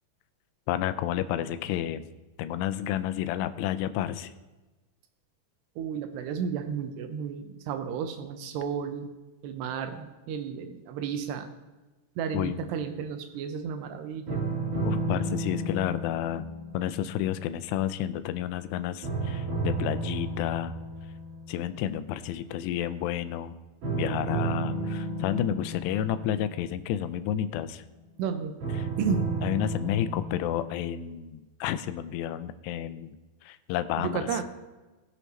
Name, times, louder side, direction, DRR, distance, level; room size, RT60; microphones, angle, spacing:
voice 1, 0.7-2.1 2.4-4.3 12.3-12.6 14.8-16.5 16.7-20.7 21.5-23.5 23.9-27.8 28.8-28.9 29.4-33.2 33.4-34.3, left 11 dB, 85° left, 12 dB, 2.6 m, -31 dB
voice 2, 5.8-9.1 9.4-11.5 12.2-14.4 28.2-28.5 29.0-29.3 34.0-34.4, right 7 dB, 85° right, 7 dB, 2.7 m, -32 dB
sound 1, 14.3-18.6 19.0-22.3 23.8-27.8 28.6-30.8, right 2 dB, 45° right, 4.9 m, -33 dB
19.5 x 7.1 x 3.1 m, 1.2 s
omnidirectional pair, 5.0 m